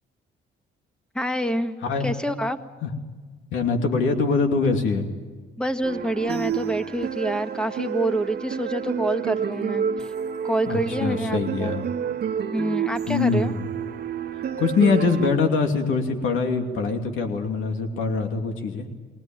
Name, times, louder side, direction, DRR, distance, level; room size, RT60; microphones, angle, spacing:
voice 1, 1.1-1.7 2.0-2.6 5.6-10.1 10.4-11.7 12.5-13.5, right 1 dB, 5° left, 8 dB, 1.6 m, -27 dB
voice 2, 3.5-5.1 10.7-11.9 13.1-13.6 14.6-18.9, left 4 dB, 80° left, 4 dB, 2.8 m, -23 dB
sound 1, 5.8-15.3, right 8 dB, 55° right, 1.4 m, -29 dB
22.0 x 19.5 x 9.0 m, 1.4 s
cardioid pair, 90°, 20 cm